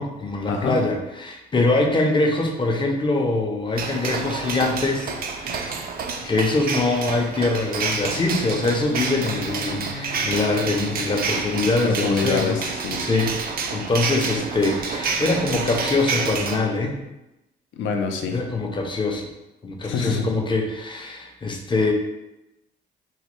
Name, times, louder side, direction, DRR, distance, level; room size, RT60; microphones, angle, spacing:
voice 1, 0.0-5.9 6.2-12.6 13.0-13.4 13.7-17.0 18.3-19.3 19.6-21.9, left 2 dB, 25° left, 2 dB, 0.5 m, -23 dB
sound 1, 3.8-16.6, right 4 dB, 50° right, 0.4 m, -28 dB
Bowed string instrument, 7.8-11.5, left 3 dB, 50° left, 0.9 m, -39 dB
voice 2, 11.8-13.0 17.7-18.4 19.8-20.3, left 5 dB, 75° left, 4 dB, 0.5 m, -25 dB
3.1 x 2.2 x 3.0 m, 0.95 s
cardioid pair, 90°, 20 cm